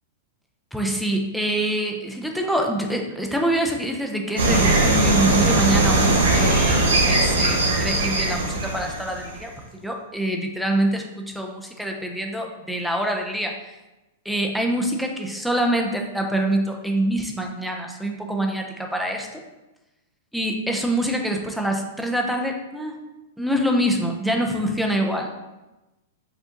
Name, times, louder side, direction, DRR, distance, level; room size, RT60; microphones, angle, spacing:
voice 1, 0.7-13.7 14.2-19.4 20.3-22.9 23.4-25.3, right 1 dB, ahead, 2 dB, 0.6 m, -25 dB
sound 1, 4.4-9.5, right 2 dB, 85° right, 1.1 m, -20 dB
4.9 x 2.5 x 3.8 m, 1.0 s
hypercardioid pair, 115°, 0 cm